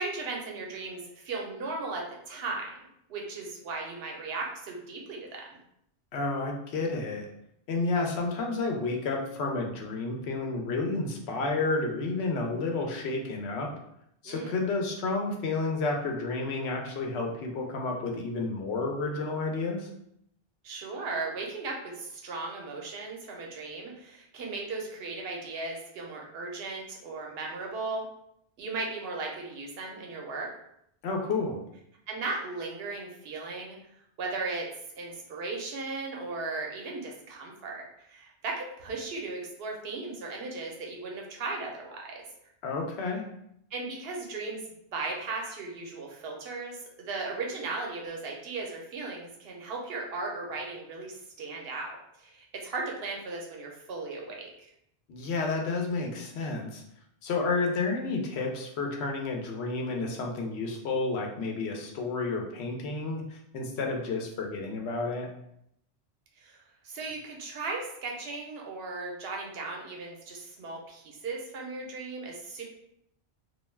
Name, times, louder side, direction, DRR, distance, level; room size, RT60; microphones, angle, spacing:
voice 1, 0.0-2.7 3.1-5.5 14.2-14.6 20.6-28.1 28.6-30.5 32.1-33.8 34.2-34.7 35.0-42.2 43.7-54.7 66.4-66.6 66.8-72.6, right 3 dB, 70° right, 0 dB, 0.9 m, -37 dB
voice 2, 6.1-7.2 7.7-13.7 14.2-19.9 31.0-31.6 42.6-43.2 55.1-56.8 57.2-65.3, left 3 dB, 80° left, 1 dB, 0.8 m, -31 dB
2.3 x 2.2 x 3.2 m, 0.75 s
omnidirectional pair, 1.1 m